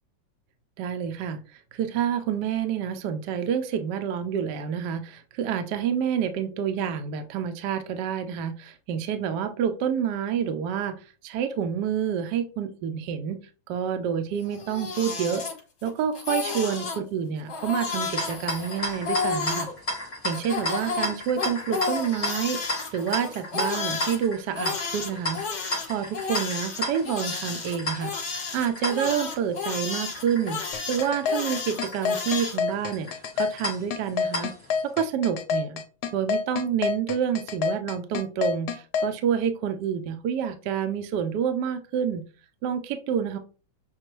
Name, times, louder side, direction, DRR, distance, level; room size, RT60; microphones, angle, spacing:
voice 1, 0.8-1.4 1.7-11.0 11.2-13.4 13.7-15.4 15.8-19.7 20.2-22.6 22.9-28.1 28.5-30.6 30.9-33.1 33.4-34.5 34.8-35.8 36.1-42.2 42.6-43.4, right 8 dB, 70° right, 8 dB, 1.1 m, -28 dB
Crying sobbing, 14.4-15.9 16.1-17.0 17.5-19.7 20.3-24.2 24.6-32.6, left 4 dB, 45° left, 1.1 m, -32 dB
sound 1, 17.9-34.8, left 1 dB, 20° left, 1.3 m, -34 dB
sound 2, 30.7-39.1, left 6 dB, 70° left, 1.1 m, -27 dB
6.6 x 2.3 x 3.0 m, 0.35 s
omnidirectional pair, 2.1 m